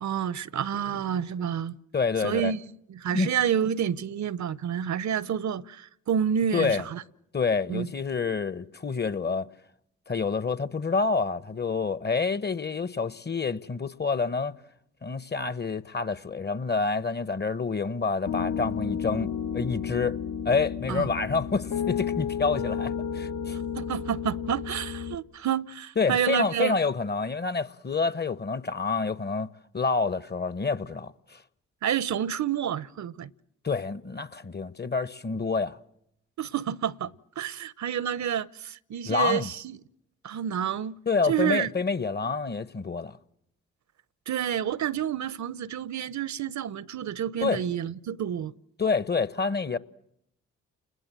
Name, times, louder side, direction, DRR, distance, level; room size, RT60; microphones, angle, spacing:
voice 1, 0.0-1.8 2.2-2.6 2.9-7.0 7.7-7.9 20.9-21.1 23.5-26.8 31.8-33.3 36.4-39.8 40.2-41.0 41.2-41.7 44.3-48.5, right 9 dB, 60° right, 0.9 m, -29 dB
voice 2, 1.9-2.5 3.1-3.3 6.5-6.8 7.3-9.5 10.1-14.5 15.0-20.2 20.4-23.6 26.0-29.5 29.7-31.4 33.6-35.8 39.1-39.5 41.1-43.2 47.4-47.6 48.8-49.8, left 4 dB, 30° left, 1.1 m, -28 dB
Piano, 18.3-25.2, left 8 dB, 75° left, 1.7 m, -32 dB
29.5 x 21.0 x 7.6 m
hypercardioid pair, 45°, 33 cm